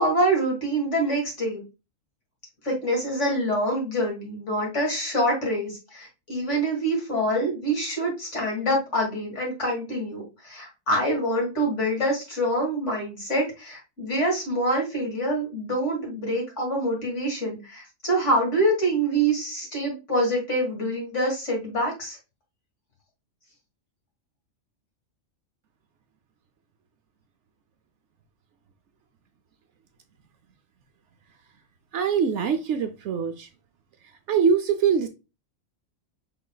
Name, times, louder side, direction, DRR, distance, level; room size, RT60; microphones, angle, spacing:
voice 1, 0.0-1.6 2.6-22.2, right 1 dB, 60° left, -1 dB, 2.5 m, -26 dB
voice 2, 31.9-33.5 34.3-35.1, right 6 dB, 65° right, 7 dB, 0.8 m, -23 dB
5.2 x 3.8 x 2.2 m, 0.27 s
omnidirectional pair, 1.4 m